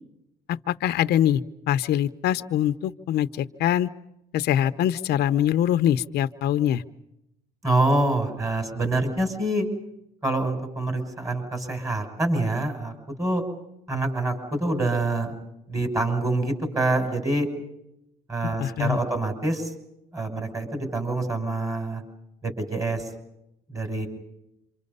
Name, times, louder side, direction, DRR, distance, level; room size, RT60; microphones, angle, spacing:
voice 1, 0.5-1.4 1.7-3.9 4.3-6.8 18.4-19.0, left 11 dB, 75° left, 12 dB, 0.8 m, -23 dB
voice 2, 7.6-9.7 10.2-13.4 13.9-15.3 15.7-17.5 18.3-19.7 20.1-22.0 22.4-23.1 23.7-24.1, right 2 dB, 20° right, 6 dB, 6.2 m, -26 dB
28.0 x 25.5 x 5.5 m, 0.85 s
cardioid pair, 110°, 17 cm